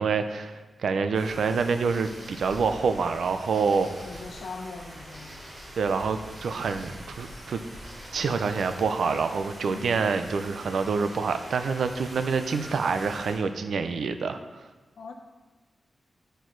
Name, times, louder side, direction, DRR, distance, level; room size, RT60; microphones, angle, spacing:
voice 1, 0.0-3.9 5.8-7.6 8.1-14.4, right 5 dB, 90° right, 8 dB, 0.5 m, -27 dB
sound 1, 1.1-13.3, equal, 35° right, 3.0 m, -44 dB
voice 2, 4.0-5.4 9.6-10.0 15.0-15.1, left 4 dB, 75° left, 3 dB, 1.0 m, -40 dB
11.0 x 4.5 x 4.6 m, 1.3 s
wide cardioid pair, 160°, 0 cm